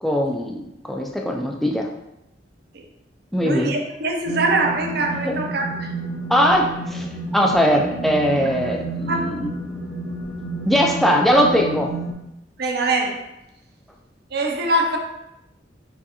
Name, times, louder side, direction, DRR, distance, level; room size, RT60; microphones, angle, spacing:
voice 1, 0.0-1.9 3.3-3.7 5.3-5.4 6.3-9.5 10.6-11.9, equal, ahead, 1 dB, 0.4 m, -20 dB
voice 2, 3.4-5.9 8.6-8.7 9.1-9.4 12.6-13.2 14.3-15.0, right 2 dB, 60° right, 2 dB, 0.7 m, -23 dB
sound 1, 4.2-12.1, right 2 dB, 60° left, 0.7 m, -31 dB
6.0 x 2.5 x 2.8 m, 0.89 s
head